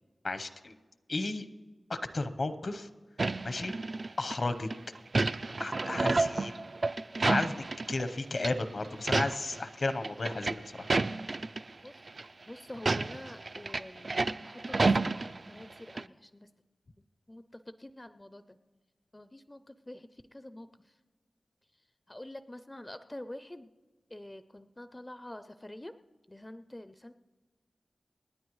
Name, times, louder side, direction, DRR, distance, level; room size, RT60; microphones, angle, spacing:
voice 1, 0.2-0.7 1.1-1.5 1.9-2.9 3.4-3.7 4.2-4.7 5.6-6.6 7.3-10.9, left 2 dB, 60° left, 9 dB, 0.9 m, -33 dB
sound 1, 3.2-4.4 4.7-8.1 8.4-8.5 8.9-9.6 9.9-11.6 12.1-12.2 12.7-15.7 16.0-16.1, right 3 dB, 55° right, 0.3 m, -30 dB
voice 2, 11.8-12.1 12.5-14.1 14.4-16.5 17.0-18.6 19.1-20.9 22.1-23.7 24.1-25.9 26.3-27.1, left 1 dB, 20° left, 10 dB, 0.4 m, -47 dB
28.0 x 9.5 x 3.1 m, 1.3 s
wide cardioid pair, 75°, 0 cm